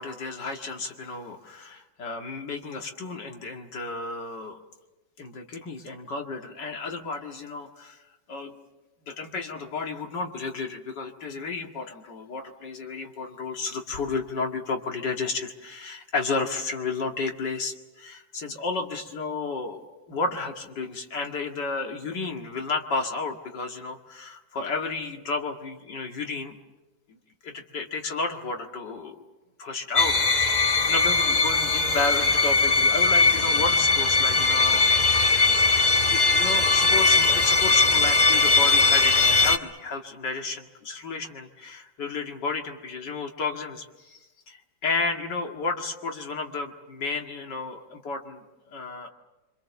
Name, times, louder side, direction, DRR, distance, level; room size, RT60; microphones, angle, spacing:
voice 1, 0.0-4.6 5.2-8.0 8.3-8.5 9.1-26.6 27.1-27.2 27.4-29.2 29.6-34.9 36.0-49.1, left 4 dB, 65° left, 3 dB, 2.7 m, -32 dB
sound 1, 30.0-39.6, left 3 dB, 25° left, 1.1 m, -20 dB
26.5 x 25.5 x 7.1 m, 1.1 s
omnidirectional pair, 2.1 m